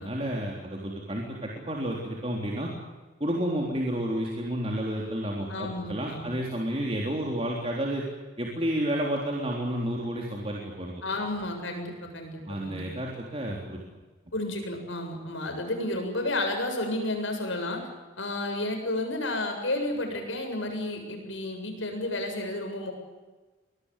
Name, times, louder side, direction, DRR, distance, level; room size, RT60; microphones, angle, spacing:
voice 1, 0.0-2.7 3.2-8.0 8.4-11.0 12.5-13.8, right 1 dB, 30° right, -1 dB, 3.7 m, -31 dB
voice 2, 5.5-6.3 11.0-12.9 14.3-17.9 18.2-22.9, left 1 dB, 85° left, 3 dB, 7.6 m, -31 dB
24.5 x 19.5 x 8.4 m, 1.2 s
head